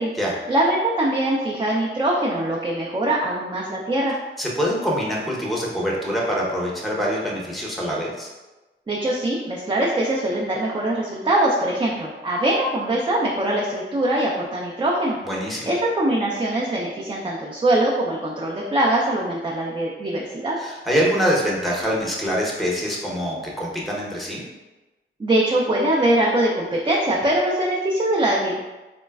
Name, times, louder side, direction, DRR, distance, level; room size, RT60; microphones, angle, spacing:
voice 1, 0.5-4.2 8.9-15.2 15.7-20.6 25.2-28.6, right 1 dB, 25° right, -4 dB, 0.4 m, -22 dB
voice 2, 4.4-8.3 15.2-15.7 20.6-24.4, equal, ahead, -3 dB, 0.8 m, -24 dB
3.9 x 2.1 x 2.2 m, 1.1 s
cardioid pair, 80°, 21 cm